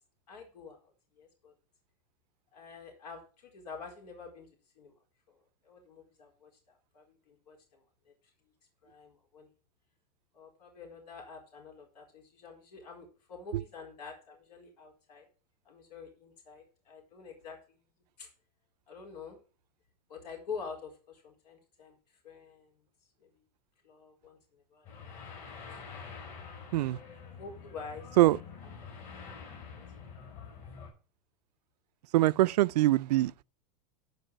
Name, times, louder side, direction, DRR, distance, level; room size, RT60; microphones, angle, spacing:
voice 1, 0.3-0.8 1.1-1.5 2.5-4.9 5.3-8.1 8.8-9.5 10.3-15.2 15.6-17.8 18.2-18.3 18.9-19.4 20.1-22.0 22.2-22.8 23.2-23.3 23.8-24.9 25.7-25.8 27.3-28.4 29.8-29.9, left 5 dB, 75° left, 4.4 m, -47 dB
sound 1, 24.8-30.9, left 6 dB, 35° left, 4.9 m, -46 dB
voice 2, 32.1-33.4, right 16 dB, 80° right, 0.5 m, -24 dB
13.5 x 4.9 x 6.3 m
supercardioid pair, 150°, 20 cm